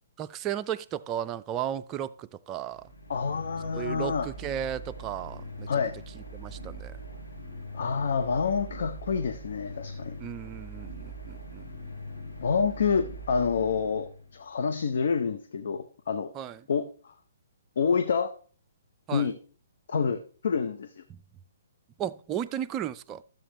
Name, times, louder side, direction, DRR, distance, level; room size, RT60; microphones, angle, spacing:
voice 1, 0.2-2.9 3.7-5.7 6.3-6.9 10.2-11.6 16.4-16.6 19.1-19.3 22.0-23.2, right 10 dB, 25° right, 0.4 m, -34 dB
sound 1, 2.7-14.5, right 1 dB, 90° left, 5.3 m, -42 dB
voice 2, 3.1-4.3 5.7-5.9 7.7-10.2 12.4-16.3 16.7-16.9 17.8-18.3 19.1-19.4 19.9-21.0, left 5 dB, 60° left, 0.7 m, -28 dB
12.5 x 7.6 x 3.0 m
figure-of-eight pair, 125°, 0 cm